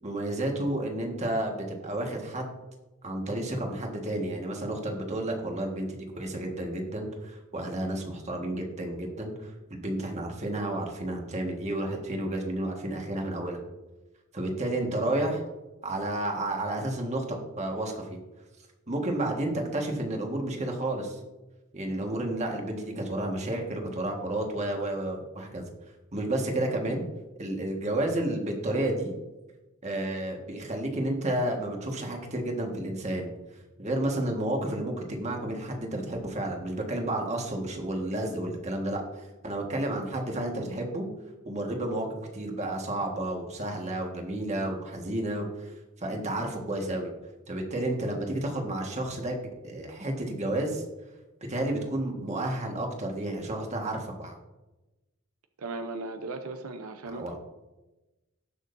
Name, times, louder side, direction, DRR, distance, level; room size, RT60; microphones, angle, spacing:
voice 1, 0.0-2.5 3.0-5.9 6.2-13.6 14.3-15.4 15.8-18.2 18.9-21.2 21.7-25.7 26.1-27.0 27.4-29.1 29.8-33.3 33.8-41.1 41.5-42.1 42.3-47.1 47.5-50.8 51.5-54.3 57.1-57.4, right 1 dB, 30° right, 1 dB, 1.7 m, -31 dB
voice 2, 55.6-57.4, right 3 dB, 85° right, 7 dB, 0.7 m, -37 dB
18.5 x 6.4 x 2.7 m, 1.1 s
head